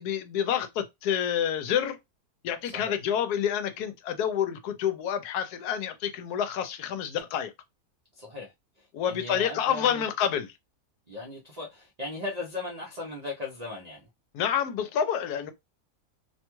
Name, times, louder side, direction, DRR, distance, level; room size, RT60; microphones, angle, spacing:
voice 1, 0.0-2.0 2.4-7.5 8.9-10.5 14.3-15.5, left 9 dB, 80° left, 1.1 m, -28 dB
voice 2, 2.6-2.9 8.1-10.0 11.1-14.0, left 2 dB, 75° right, 0.3 m, -38 dB
2.7 x 2.2 x 2.9 m
omnidirectional pair, 1.7 m